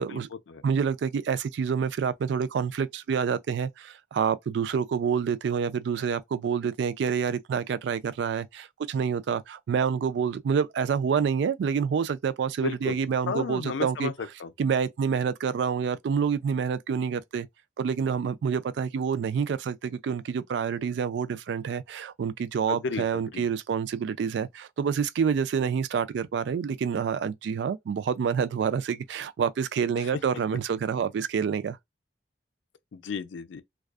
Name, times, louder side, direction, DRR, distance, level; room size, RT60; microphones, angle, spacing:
voice 1, 0.6-14.1 14.6-17.5 17.8-31.8, right 6 dB, 75° right, 0.3 m, -27 dB
voice 2, 12.6-13.0 13.3-14.5 22.7-23.5 30.0-30.2 32.9-33.6, left 5 dB, 85° left, 0.4 m, -33 dB
2.3 x 2.3 x 2.3 m
head